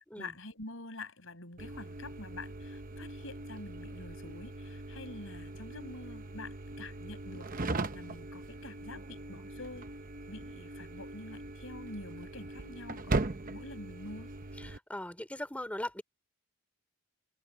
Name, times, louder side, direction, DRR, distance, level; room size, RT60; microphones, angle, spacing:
voice 1, 0.1-9.9 10.3-13.2 13.4-14.3, left 2 dB, 60° left, 7.1 m, -47 dB
sound 1, 1.6-14.8, right 2 dB, 40° right, 0.9 m, -40 dB
voice 2, 14.6-16.0, left 1 dB, 5° left, 2.9 m, -39 dB
head